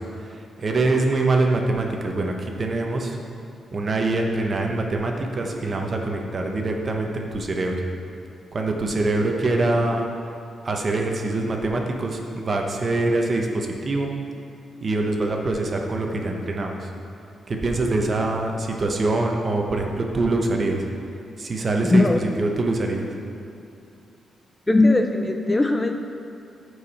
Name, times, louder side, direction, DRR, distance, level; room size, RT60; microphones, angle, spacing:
voice 1, 0.0-3.2 3.7-7.7 8.5-10.1 10.6-14.1 14.8-16.9 17.5-20.8 21.4-23.1, right 2 dB, 35° right, 2 dB, 1.0 m, -24 dB
voice 2, 21.8-22.2 24.7-25.9, left 2 dB, 15° left, 4 dB, 0.4 m, -19 dB
14.5 x 4.9 x 4.2 m, 2.6 s
cardioid pair, 135°, 0 cm